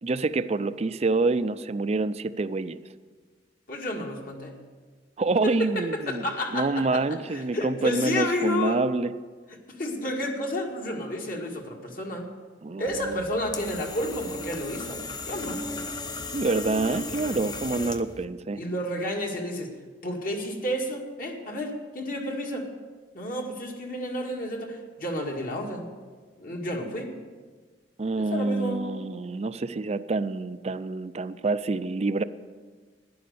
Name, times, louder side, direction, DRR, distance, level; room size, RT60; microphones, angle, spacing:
voice 1, 0.0-2.8 5.2-6.3 6.5-9.1 12.6-13.2 16.3-18.6 28.0-32.2, right 3 dB, 35° right, 13 dB, 0.4 m, -27 dB
voice 2, 3.7-4.6 5.4-8.8 9.5-12.3 12.8-15.6 18.5-19.7 20.0-22.7 23.1-25.9 26.4-27.1 28.2-28.8, left 1 dB, 50° left, 1 dB, 2.1 m, -31 dB
sound 1, 12.9-18.3, left 3 dB, 25° left, 0.8 m, -36 dB
11.5 x 10.5 x 6.9 m, 1.4 s
head